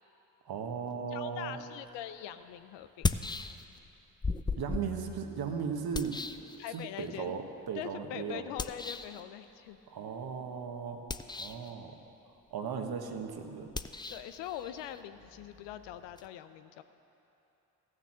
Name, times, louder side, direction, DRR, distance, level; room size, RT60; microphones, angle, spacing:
voice 1, 0.4-1.6 4.6-6.2 6.7-8.5 9.9-11.0 11.4-12.0 12.5-13.7, right 6 dB, 55° right, 5 dB, 1.3 m, -37 dB
voice 2, 1.1-3.2 6.6-7.3 7.7-9.8 14.1-16.8, left 11 dB, 75° left, 11 dB, 0.6 m, -42 dB
sound 1, 1.9-2.0 2.8-3.9 4.2-7.1 8.6-9.2 11.0-11.7 13.7-16.3, left 3 dB, 10° left, 0.4 m, -37 dB
14.5 x 6.5 x 7.5 m, 3.0 s
hypercardioid pair, 45°, 43 cm